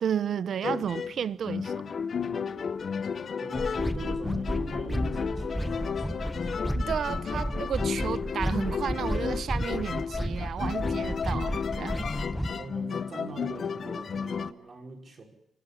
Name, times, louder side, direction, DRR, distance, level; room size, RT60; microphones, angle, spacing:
voice 1, 0.0-1.8 6.7-12.1, right 8 dB, 60° right, 0.8 m, -32 dB
sound 1, 0.6-14.5, left 6 dB, 45° left, 0.9 m, -33 dB
voice 2, 3.4-6.3 12.6-15.2, right 3 dB, 40° right, 5.4 m, -42 dB
sound 2, 3.5-12.5, equal, ahead, 1.1 m, -32 dB
27.0 x 12.0 x 10.0 m
cardioid pair, 125°, 0 cm